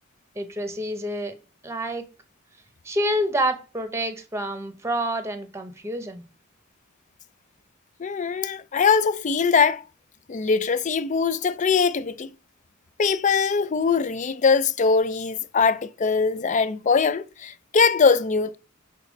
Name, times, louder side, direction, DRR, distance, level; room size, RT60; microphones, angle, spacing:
voice 1, 0.4-1.3 1.6-2.1 2.8-6.2, right 1 dB, 15° right, 0.9 m, -28 dB
voice 2, 8.0-9.8 10.3-12.3 13.0-18.6, left 5 dB, 35° left, 0.4 m, -22 dB
6.7 x 4.1 x 5.2 m
head